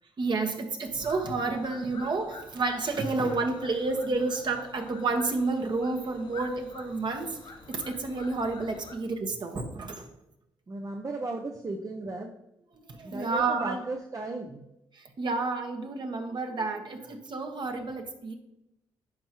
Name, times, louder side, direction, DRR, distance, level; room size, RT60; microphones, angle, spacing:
voice 1, 0.2-7.4 7.7-10.1 12.7-13.8 14.9-18.3, right 3 dB, 50° right, 4 dB, 1.3 m, -30 dB
sound 1, 1.0-9.0, left 4 dB, 55° left, 1.0 m, -48 dB
voice 2, 10.7-12.3 13.0-14.6, right 2 dB, 35° right, 2 dB, 0.7 m, -35 dB
11.0 x 4.5 x 3.0 m, 0.87 s
supercardioid pair, 60°, 10 cm